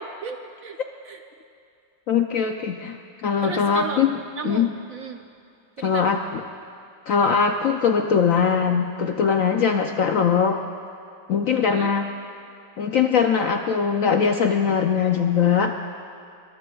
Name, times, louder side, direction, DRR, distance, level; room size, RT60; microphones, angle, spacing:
voice 1, 0.2-0.8 1.0-1.2 3.4-4.0 4.4-5.2 5.8-6.1 11.6-11.9, right 6 dB, 65° right, 5 dB, 0.9 m, -34 dB
voice 2, 2.1-4.2 4.4-4.7 5.8-6.4 7.1-10.6 11.3-12.1 12.8-15.7, left 6 dB, 65° left, 5 dB, 0.8 m, -21 dB
22.5 x 21.5 x 2.4 m, 2.5 s
omnidirectional pair, 2.0 m